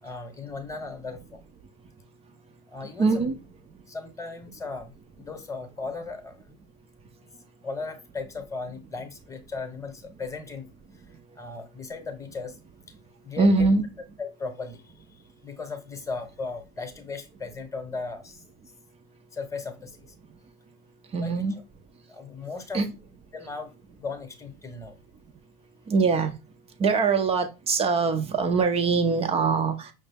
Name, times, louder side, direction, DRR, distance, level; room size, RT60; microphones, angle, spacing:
voice 1, 0.0-1.4 2.7-3.3 3.9-6.5 7.6-10.7 11.1-12.6 12.9-13.0 13.2-13.7 14.2-18.4 19.3-20.1 21.2-21.6 22.1-22.8 23.3-25.0, left 4 dB, 5° left, 0.9 m, -37 dB
voice 2, 3.0-3.4 13.4-13.8 21.1-21.6 22.7-22.9 25.9-26.3 26.8-29.9, right 4 dB, 15° right, 0.3 m, -22 dB
5.6 x 2.1 x 3.4 m
hypercardioid pair, 105°, 43 cm